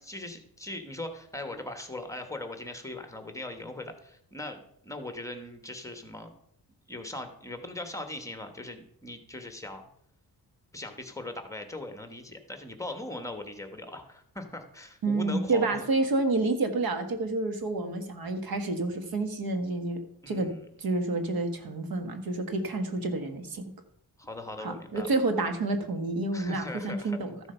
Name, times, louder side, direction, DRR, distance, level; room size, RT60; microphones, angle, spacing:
voice 1, 0.1-6.3 6.9-9.8 10.7-15.9 20.2-20.6 24.2-25.1 26.3-27.2, left 1 dB, 10° left, 6 dB, 1.2 m, -40 dB
voice 2, 15.0-20.5 20.8-23.6 24.6-27.4, right 2 dB, 70° right, 7 dB, 1.7 m, -29 dB
13.5 x 7.1 x 5.6 m, 0.71 s
wide cardioid pair, 150°, 37 cm